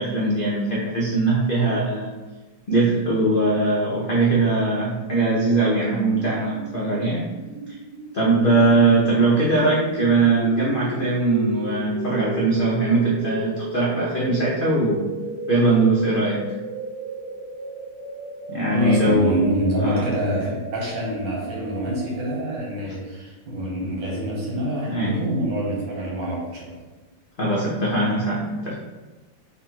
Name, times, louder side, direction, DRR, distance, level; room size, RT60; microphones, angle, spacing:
voice 1, 0.0-2.1 2.7-7.2 7.7-7.8 8.1-15.1 15.5-16.4 18.5-19.4 19.8-20.1 24.9-25.2 27.4-28.7, right 2 dB, 70° left, -5 dB, 0.5 m, -21 dB
sound 1, 3.8-22.6, right 2 dB, 65° right, 1.2 m, -35 dB
voice 2, 18.7-26.8, right 1 dB, 85° right, -4 dB, 2.0 m, -26 dB
3.9 x 2.6 x 4.4 m, 1.2 s
omnidirectional pair, 2.0 m